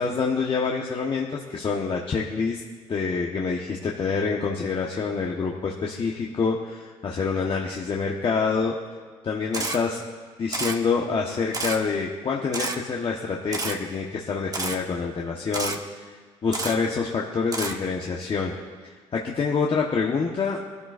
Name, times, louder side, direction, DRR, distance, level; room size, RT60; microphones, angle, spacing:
voice 1, 0.0-2.6 2.9-8.8 9.2-10.0 10.4-15.8 16.0-16.2 16.4-18.5 18.8-20.6, left 5 dB, 40° left, -1 dB, 1.2 m, -26 dB
Camera, 9.5-9.8 10.5-10.8 11.5-11.8 12.5-12.8 13.5-13.8 14.5-14.8 15.5-15.8 16.5-16.8 17.5-17.7, right 3 dB, 25° right, 1.2 m, -29 dB
20.0 x 12.5 x 2.6 m, 1.5 s
supercardioid pair, 70°, 13 cm